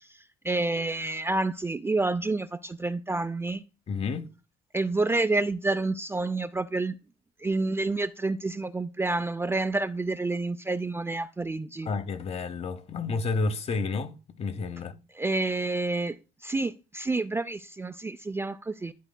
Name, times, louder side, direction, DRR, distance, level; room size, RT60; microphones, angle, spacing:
voice 1, 0.4-3.6 4.7-6.9 7.4-11.9 15.1-16.2 16.4-18.9, right 2 dB, 15° right, 0.4 m, -28 dB
voice 2, 3.9-4.3 11.9-14.1 14.4-14.9, left 4 dB, 40° left, 0.9 m, -30 dB
12.0 x 7.3 x 2.2 m
cardioid pair, 110°, 17 cm